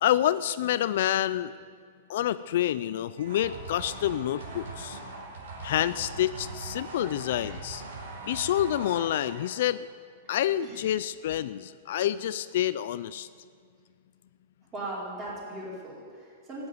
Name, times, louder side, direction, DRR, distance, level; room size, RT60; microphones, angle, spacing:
voice 1, 0.0-1.6 2.1-5.0 5.6-7.8 8.3-9.9 10.3-13.3, left 12 dB, 55° left, 15 dB, 0.4 m, -28 dB
sound 1, 3.2-9.7, right 2 dB, 85° right, 4.8 m, -41 dB
voice 2, 14.7-16.7, right 1 dB, 20° right, -5 dB, 4.3 m, -39 dB
14.0 x 9.5 x 9.5 m, 2.1 s
supercardioid pair, 170°, 0 cm